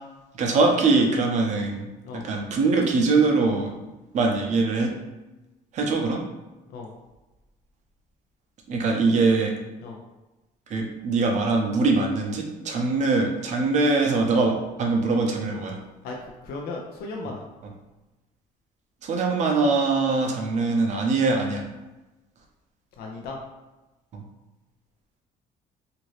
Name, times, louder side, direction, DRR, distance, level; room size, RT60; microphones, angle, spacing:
voice 1, 0.4-1.9 2.1-3.7 4.1-4.9 5.7-6.2 8.7-9.5 10.7-15.8 19.0-21.6 24.1-24.2, right 3 dB, 45° right, 1 dB, 0.6 m, -22 dB
voice 2, 16.0-17.5 23.0-23.4, left 3 dB, 70° left, 0 dB, 0.5 m, -36 dB
2.7 x 2.5 x 3.1 m, 1.1 s
cardioid pair, 150°, 16 cm